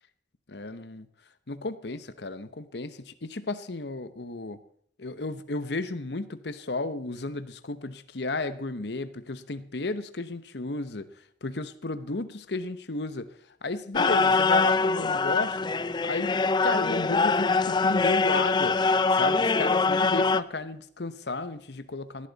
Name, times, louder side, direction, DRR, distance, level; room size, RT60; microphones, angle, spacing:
voice 1, 0.5-1.1 1.5-4.6 5.0-11.1 11.4-13.3 13.6-15.6 16.0-16.4 16.6-18.8 19.1-22.3, left 2 dB, 65° left, 12 dB, 1.0 m, -33 dB
sound 1, 13.9-20.4, left 4 dB, 25° left, 0.4 m, -23 dB
18.5 x 12.0 x 4.1 m, 0.63 s
head